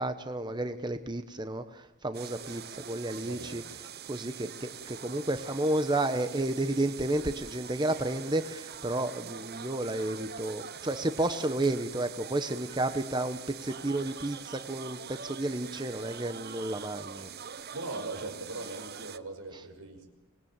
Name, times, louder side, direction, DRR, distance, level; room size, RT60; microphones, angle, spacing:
voice 1, 0.0-3.6 4.1-17.3, right 2 dB, 20° right, 9 dB, 1.0 m, -31 dB
sound 1, 2.1-19.2, right 7 dB, 45° right, 0.8 m, -44 dB
voice 2, 3.2-3.7 17.7-20.1, right 2 dB, 90° right, 6 dB, 5.6 m, -40 dB
25.5 x 19.5 x 8.9 m, 1.1 s
head